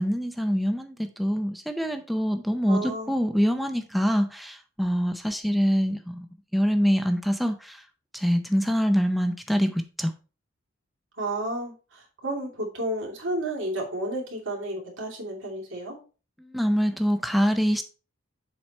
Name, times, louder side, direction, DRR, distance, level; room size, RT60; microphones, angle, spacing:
voice 1, 0.0-6.3 6.5-7.8 8.1-10.1 16.4-17.8, equal, ahead, 7 dB, 0.5 m, -25 dB
voice 2, 2.7-3.1 11.2-16.0, right 1 dB, 75° right, -2 dB, 2.7 m, -32 dB
7.2 x 4.7 x 4.2 m, 0.34 s
head